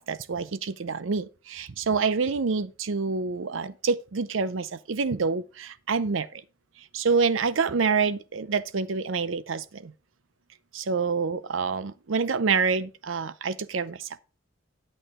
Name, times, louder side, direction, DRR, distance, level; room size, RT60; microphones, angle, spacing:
voice 1, 0.0-6.4 6.9-9.9 10.7-14.1, right 5 dB, 75° right, 0.6 m, -27 dB
8.9 x 8.3 x 3.7 m
head